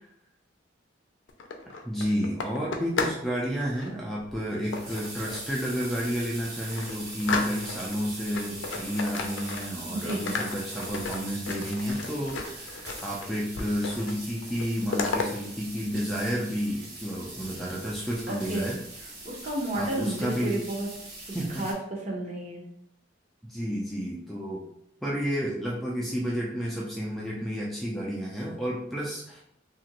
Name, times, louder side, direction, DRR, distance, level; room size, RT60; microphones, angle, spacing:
sound 1, 1.3-3.3 3.5-3.9 4.7-5.5 6.0-6.1 6.4-8.0 8.3-9.8 10.1-13.3 13.6-14.2 14.4-15.3, left 4 dB, 90° left, 0.4 m, -33 dB
voice 1, 1.8-18.8 19.7-20.6 21.3-21.7 23.5-24.7 25.0-29.4, equal, ahead, -5 dB, 0.4 m, -31 dB
sound 2, 4.3-21.7, right 2 dB, 60° right, 1.1 m, -42 dB
voice 2, 9.9-10.2 18.3-18.7 19.2-20.9 21.6-22.7, right 1 dB, 40° right, -2 dB, 0.8 m, -31 dB
3.0 x 2.5 x 2.9 m, 0.73 s
head